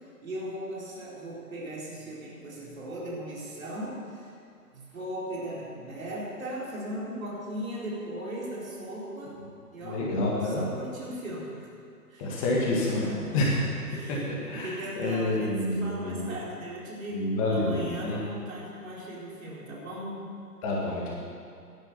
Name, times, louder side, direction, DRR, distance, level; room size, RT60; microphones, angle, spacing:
voice 1, 0.2-4.3 4.7-9.4 9.7-10.1 10.4-11.7 12.1-12.4 12.9-13.5 13.8-14.2 14.5-20.3, right 1 dB, 55° right, -4 dB, 4.2 m, -38 dB
voice 2, 9.8-10.7 12.2-13.0 13.3-13.5 14.1-16.3 17.1-18.2 20.6-21.1, left 2 dB, 20° left, -4 dB, 2.0 m, -28 dB
12.0 x 10.5 x 7.0 m, 2.4 s
figure-of-eight pair, 145°, 48 cm